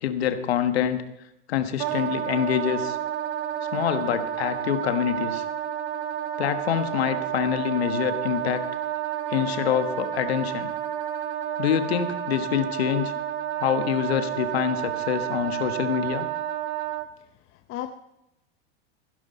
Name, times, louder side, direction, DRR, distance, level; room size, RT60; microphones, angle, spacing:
voice 1, 0.0-1.0 1.5-3.0 3.7-5.4 6.4-8.7 9.3-10.7 11.6-13.1 13.6-16.3, left 9 dB, 85° left, 9 dB, 1.4 m, -26 dB
Wind instrument woodwind instrument, 1.8-17.1, right 11 dB, 70° right, 1.2 m, -30 dB
voice 2, 17.2-17.9, left 12 dB, 40° left, 8 dB, 0.8 m, -37 dB
16.0 x 11.5 x 4.2 m, 0.87 s
hypercardioid pair, 110°, 31 cm